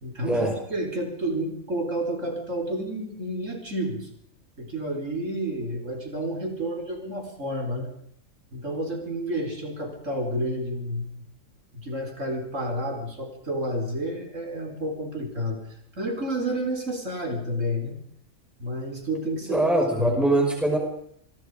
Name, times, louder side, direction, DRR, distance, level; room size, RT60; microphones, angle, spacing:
voice 1, 0.0-0.4 0.7-4.1 4.6-7.9 8.5-11.3 11.7-15.6 16.0-18.0 18.6-19.7 19.9-20.1, equal, 70° right, 3 dB, 4.9 m, -30 dB
voice 2, 19.5-20.8, right 2 dB, ahead, 1 dB, 5.2 m, -22 dB
27.0 x 22.0 x 5.1 m, 0.68 s
omnidirectional pair, 1.4 m